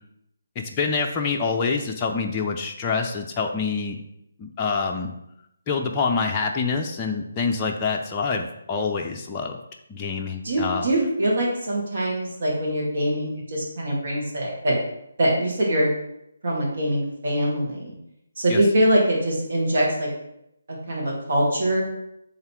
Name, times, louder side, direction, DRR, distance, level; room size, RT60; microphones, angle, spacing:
voice 1, 0.6-4.0 4.4-5.1 5.7-9.6 9.9-10.9 18.5-18.6, left 4 dB, 20° left, 0 dB, 0.5 m, -26 dB
voice 2, 10.4-14.8 15.2-15.9 16.4-17.9 18.4-20.1 20.9-21.8, right 1 dB, 60° right, -2 dB, 2.2 m, -23 dB
5.6 x 3.8 x 4.6 m, 0.79 s
figure-of-eight pair, 150°, 0 cm